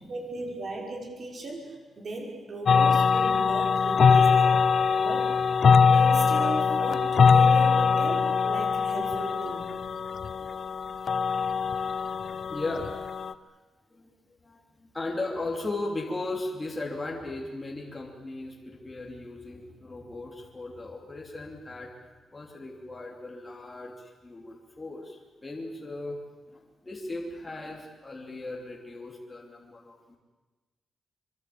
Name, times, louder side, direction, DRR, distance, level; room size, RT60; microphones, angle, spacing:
voice 1, 0.1-4.6 5.0-5.3 5.9-9.7, right 2 dB, 40° right, 1 dB, 6.1 m, -36 dB
sound 1, 2.7-13.3, left 6 dB, 40° left, 0.8 m, -22 dB
voice 2, 12.1-12.9 13.9-14.1 14.4-26.2 26.5-30.2, left 2 dB, 15° left, -1 dB, 3.1 m, -37 dB
25.5 x 24.5 x 8.7 m, 1.2 s
wide cardioid pair, 180°, 0 cm